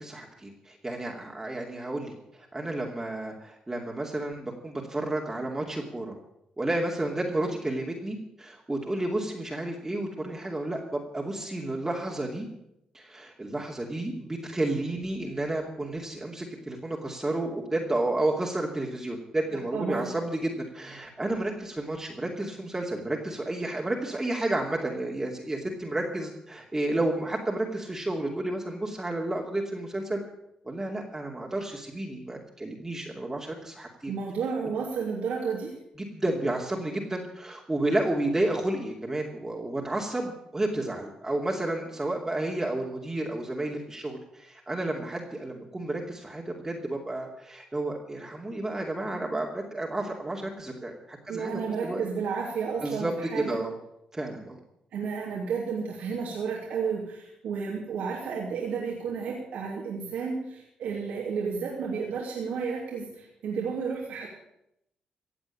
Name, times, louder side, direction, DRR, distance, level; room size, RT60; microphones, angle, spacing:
voice 1, 0.0-6.2 6.6-12.5 12.9-30.2 30.6-34.1 36.0-52.0 52.8-53.7 54.1-54.6, right 1 dB, 20° right, -1 dB, 2.6 m, -31 dB
voice 2, 19.5-20.1 34.1-35.7 51.3-53.6 54.9-64.3, right 5 dB, 80° right, -3 dB, 3.0 m, -32 dB
16.5 x 7.8 x 8.5 m, 0.81 s
cardioid pair, 75°, 2 cm